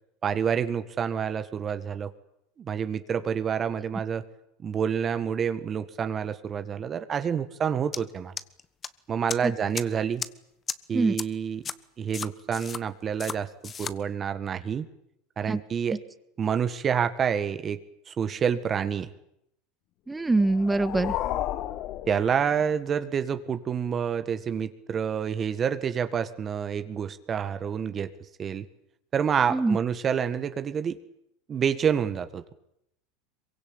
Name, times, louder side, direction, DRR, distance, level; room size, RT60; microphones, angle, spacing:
voice 1, 0.2-2.1 2.6-4.2 4.6-8.3 9.1-10.2 10.9-11.6 12.0-14.8 15.4-16.0 16.4-17.8 18.1-19.1 22.1-28.1 28.4-28.6 29.1-31.0 31.5-32.5, right 7 dB, 30° right, 10 dB, 1.8 m, -28 dB
sound 1, 7.9-8.0 8.4-8.9 9.3-9.4 9.7-9.8 10.2-10.3 10.7-10.8 11.2-11.3 11.6-11.7 12.1-12.8 13.2-13.4 13.6-13.9, left 7 dB, 30° left, 1.3 m, -33 dB
voice 2, 20.1-21.1 29.5-29.8, right 2 dB, 10° right, 13 dB, 1.6 m, -24 dB
sound 2, 20.3-22.9, left 13 dB, 50° left, 1.3 m, -33 dB
23.5 x 22.5 x 8.9 m, 0.78 s
hypercardioid pair, 100°, 0 cm